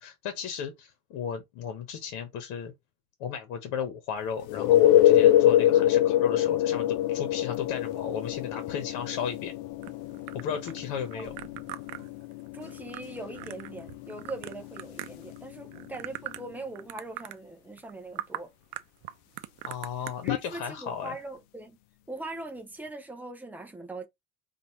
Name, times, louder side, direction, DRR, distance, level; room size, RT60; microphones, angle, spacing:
voice 1, 0.0-2.7 3.2-9.5 10.3-11.4 19.6-21.2, left 7 dB, 65° left, 1.1 m, -35 dB
sound 1, 4.5-16.0 20.3-20.4, left 12 dB, 90° left, 0.6 m, -25 dB
sound 2, 9.8-15.4 15.7-16.5 16.8-17.4 17.8-17.9 18.2-18.4 18.7-20.1, right 16 dB, 60° right, 0.6 m, -41 dB
voice 2, 12.5-18.5 20.2-21.8 22.1-24.1, right 2 dB, 5° right, 0.4 m, -41 dB
5.2 x 2.5 x 3.0 m
cardioid pair, 175°, 33 cm